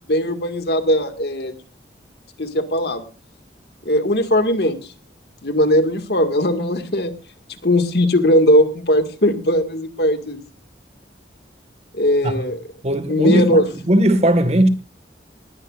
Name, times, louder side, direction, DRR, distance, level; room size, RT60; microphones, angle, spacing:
voice 1, 0.1-1.5 2.4-3.0 3.9-4.8 5.4-7.1 7.6-10.4 11.9-12.6 13.1-13.7, equal, 65° left, 2.0 m, -18 dB
voice 2, 12.8-14.7, right 1 dB, 40° right, 1.7 m, -17 dB
20.0 x 17.0 x 2.5 m
head